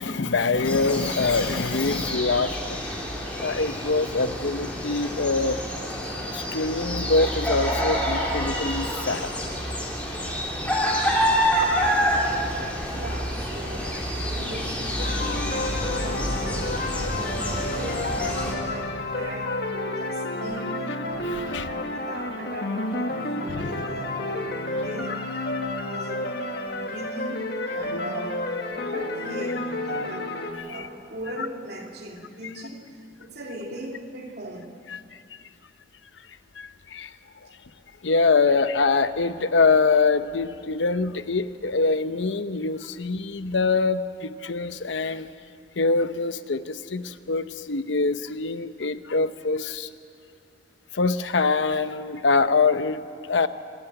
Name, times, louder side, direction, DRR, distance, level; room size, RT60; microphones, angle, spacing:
voice 1, 0.0-2.8 3.4-5.6 6.3-9.3 21.2-21.7 23.5-23.7 27.9-28.0 30.7-30.9 36.6-37.1 38.0-45.3 45.8-49.9 50.9-53.5, left 4 dB, 85° left, 11 dB, 0.8 m, -24 dB
sound 1, 0.6-18.5, equal, 10° left, 3.3 m, -28 dB
voice 2, 12.5-16.8 17.1-20.7 21.5-25.4 25.7-26.3 26.7-28.4 28.8-30.3 30.7-34.7, right 1 dB, 60° right, 1 dB, 2.9 m, -39 dB
sound 2, 15.0-30.5, left 2 dB, 60° left, 1.7 m, -30 dB
26.5 x 13.0 x 9.1 m, 2.3 s
head